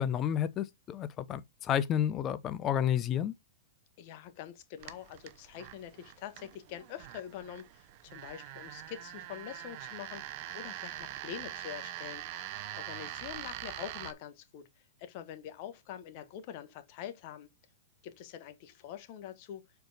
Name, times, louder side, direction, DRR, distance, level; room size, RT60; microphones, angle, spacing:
voice 1, 0.0-3.3, left 10 dB, 25° left, 0.7 m, -31 dB
voice 2, 4.0-14.7 15.0-17.5 18.0-19.6, left 10 dB, 45° left, 1.3 m, -45 dB
sound 1, 4.8-14.1, right 13 dB, 45° right, 0.8 m, -44 dB
6.5 x 4.6 x 4.0 m
hypercardioid pair, 145°, 0 cm